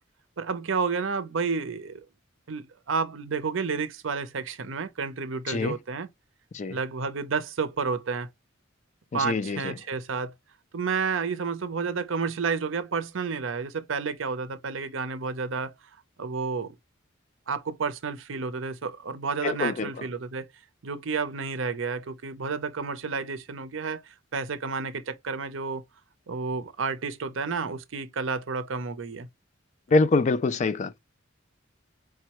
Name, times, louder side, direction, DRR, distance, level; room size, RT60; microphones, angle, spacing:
voice 1, 0.4-2.0 2.5-6.1 6.7-8.3 9.1-10.3 10.7-15.7 16.2-16.8 17.5-20.5 20.8-25.8 26.3-29.3, right 5 dB, 70° right, 0.6 m, -31 dB
voice 2, 9.1-9.6 19.4-19.9 29.9-31.0, left 3 dB, 35° left, 0.3 m, -24 dB
4.7 x 2.2 x 2.9 m
head